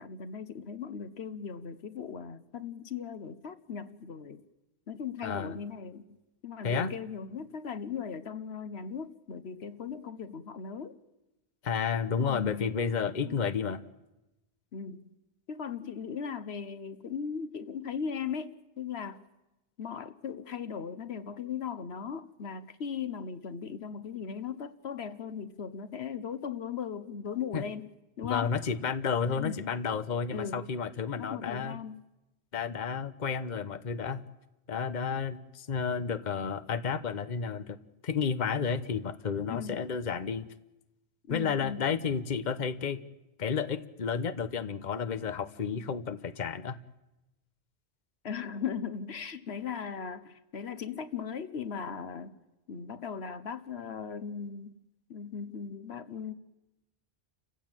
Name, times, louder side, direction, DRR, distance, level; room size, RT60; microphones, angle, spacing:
voice 1, 0.0-4.4 4.9-6.2 6.4-11.0 12.2-12.7 13.2-13.4 14.7-15.1 15.5-19.2 19.8-27.9 28.2-28.6 29.4-29.7 30.3-30.7 31.2-32.0 39.5-39.9 41.3-41.9 48.2-52.4 52.7-54.8 55.1-56.3, left 7 dB, 75° left, 1.3 m, -38 dB
voice 2, 5.2-5.5 6.6-6.9 11.6-13.8 27.5-27.6 28.2-31.8 32.5-34.2 34.7-37.8 38.0-40.5 41.3-43.0 43.4-46.8, left 6 dB, 45° left, 1.1 m, -31 dB
29.5 x 15.5 x 9.0 m
omnidirectional pair, 1.1 m